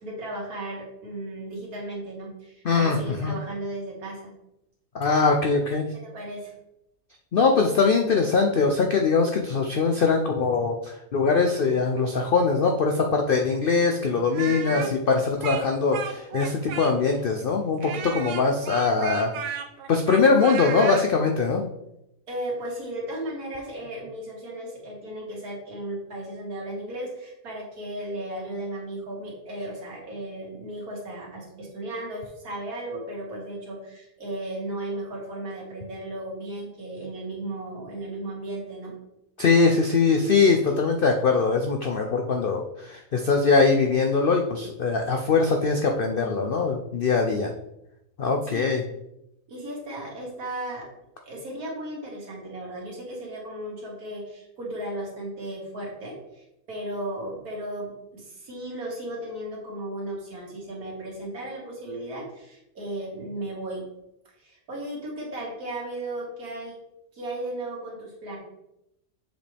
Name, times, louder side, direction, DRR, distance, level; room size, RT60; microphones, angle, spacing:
voice 1, 0.0-4.3 6.0-6.5 14.6-14.9 22.3-38.9 48.3-48.7 49.5-50.9 51.3-63.9 64.4-66.8 67.1-68.4, right 1 dB, 65° right, -3 dB, 2.4 m, -35 dB
voice 2, 2.6-3.3 4.9-5.9 7.3-19.3 19.9-21.6 39.4-47.5 48.2-48.8, left 4 dB, 70° left, 3 dB, 0.5 m, -22 dB
Speech, 14.3-17.2 17.8-21.1, right 7 dB, 80° right, 1.2 m, -34 dB
7.2 x 5.2 x 3.4 m, 0.85 s
omnidirectional pair, 1.7 m